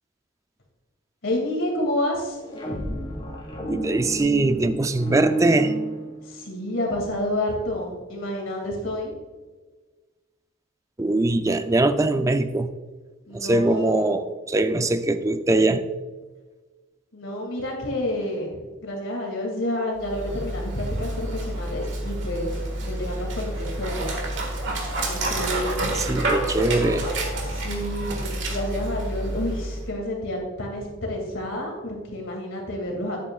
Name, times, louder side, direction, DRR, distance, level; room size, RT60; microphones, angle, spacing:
voice 1, 1.2-2.4 6.2-9.2 13.3-14.2 17.1-24.2 25.0-26.1 27.4-33.2, left 1 dB, 70° left, 0 dB, 2.3 m, -29 dB
sound 1, 2.3-6.6, right 2 dB, 25° left, 1.8 m, -30 dB
voice 2, 3.7-5.7 11.0-12.7 13.3-15.9 25.8-27.1, right 2 dB, 15° right, 10 dB, 0.4 m, -22 dB
Dog, 20.0-29.9, right 1 dB, 65° right, 1.7 m, -29 dB
10.5 x 8.5 x 2.3 m, 1.3 s
head